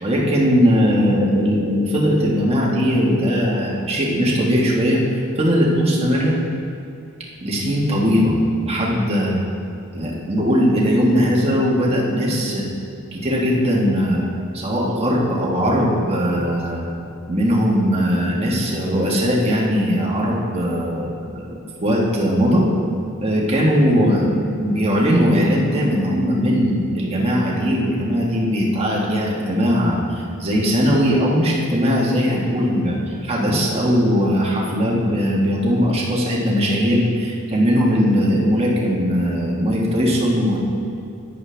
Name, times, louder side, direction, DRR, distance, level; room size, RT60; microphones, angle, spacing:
voice 1, 0.0-5.0 5.4-6.4 7.4-8.3 8.6-9.4 9.9-12.6 13.1-14.3 14.5-16.8 17.3-22.6 23.2-40.6, equal, 30° right, -4 dB, 1.6 m, -19 dB
10.5 x 9.5 x 3.4 m, 2.6 s
head